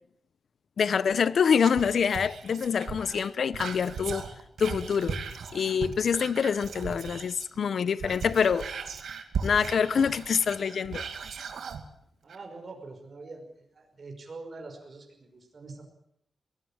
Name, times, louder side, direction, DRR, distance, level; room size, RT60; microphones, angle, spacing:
voice 1, 0.8-4.2 4.6-5.2 5.5-8.7 9.4-11.0, left 6 dB, 70° left, 0.9 m, -26 dB
Whispering, 1.6-7.6 7.9-11.8 12.3-12.4, right 5 dB, 85° right, 2.6 m, -38 dB
voice 2, 12.2-13.5 13.7-15.9, right 3 dB, 45° right, 5.6 m, -44 dB
22.5 x 18.5 x 8.9 m
wide cardioid pair, 120°, 0 cm